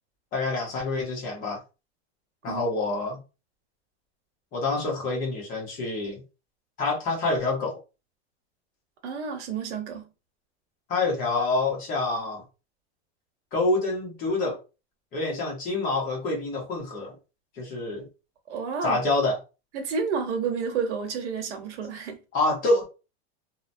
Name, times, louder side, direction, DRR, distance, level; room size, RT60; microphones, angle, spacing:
voice 1, 0.3-1.6 2.4-3.2 4.5-6.2 6.8-7.8 10.9-12.4 13.5-14.6 15.1-17.1 17.6-18.1 18.8-19.4 22.3-22.8, left 2 dB, 25° left, 0.8 m, -27 dB
voice 2, 9.0-10.0 18.5-19.0 19.7-22.2, right 5 dB, 90° right, 1.0 m, -30 dB
2.8 x 2.1 x 2.5 m
supercardioid pair, 165°, 34 cm